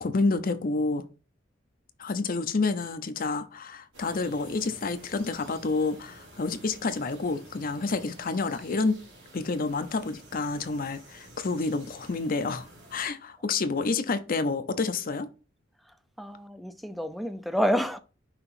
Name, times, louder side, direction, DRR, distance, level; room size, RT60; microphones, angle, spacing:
voice 1, 0.0-1.0 2.0-9.0 9.3-15.3, left 3 dB, 45° left, 0.6 m, -29 dB
sound 1, 3.9-13.1, right 1 dB, 70° right, 2.7 m, -51 dB
voice 2, 15.8-18.0, equal, ahead, 0.5 m, -29 dB
5.8 x 2.9 x 5.6 m
head